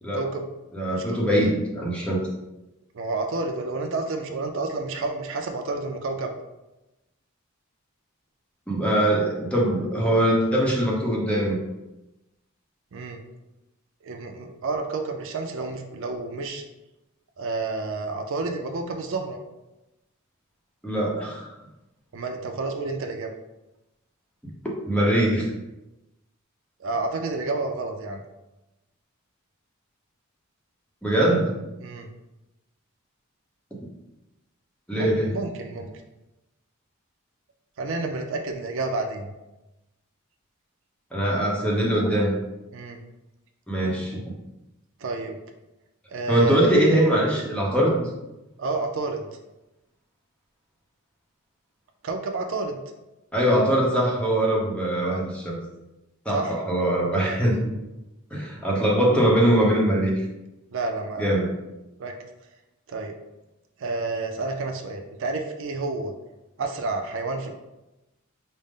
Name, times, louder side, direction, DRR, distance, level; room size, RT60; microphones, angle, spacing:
voice 1, 0.1-0.5 0.9-1.2 2.9-6.3 12.9-13.2 14.0-16.6 17.4-19.4 22.1-23.3 26.8-28.2 31.8-32.1 35.0-35.9 37.8-39.3 42.7-43.0 45.0-45.4 46.1-46.7 48.6-49.3 52.0-52.8 56.3-56.6 57.2-57.4 60.7-61.3 62.0-62.1 62.9-63.1 63.8-66.1 66.6-67.5, right 3 dB, 60° right, 4 dB, 0.4 m, -30 dB
voice 2, 0.7-2.2 8.7-11.6 20.8-21.5 24.9-25.5 31.0-31.5 34.9-35.3 41.1-42.3 43.7-44.2 46.3-48.0 53.3-55.6 56.2-57.7 58.3-60.2 61.2-61.5, right 1 dB, 5° left, -3 dB, 0.8 m, -22 dB
5.1 x 2.0 x 3.6 m, 0.97 s
head